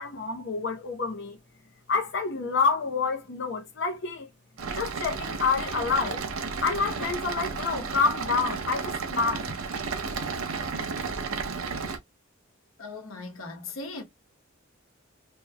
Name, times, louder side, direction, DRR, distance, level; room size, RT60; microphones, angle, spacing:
voice 1, 0.0-1.4 1.9-4.3 4.7-6.2 6.6-9.4, left 4 dB, 60° left, 0.8 m, -28 dB
sound 1, 4.6-12.0, right 4 dB, 90° right, 0.7 m, -33 dB
voice 2, 12.8-14.0, left 3 dB, 85° left, 1.1 m, -38 dB
4.4 x 3.1 x 2.2 m
head